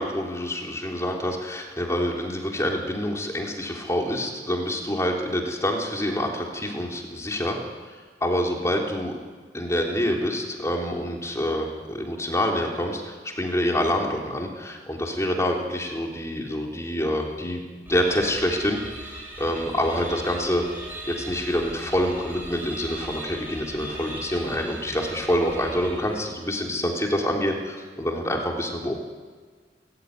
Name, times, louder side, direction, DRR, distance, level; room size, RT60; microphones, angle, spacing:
voice 1, 0.0-7.6 7.9-9.1 9.5-17.6 17.9-18.8 19.1-20.6 21.1-28.9, equal, 15° left, 0 dB, 3.6 m, -26 dB
sound 1, 17.8-26.5, right 1 dB, 10° right, 7.3 m, -39 dB
29.0 x 15.0 x 9.7 m, 1.5 s
head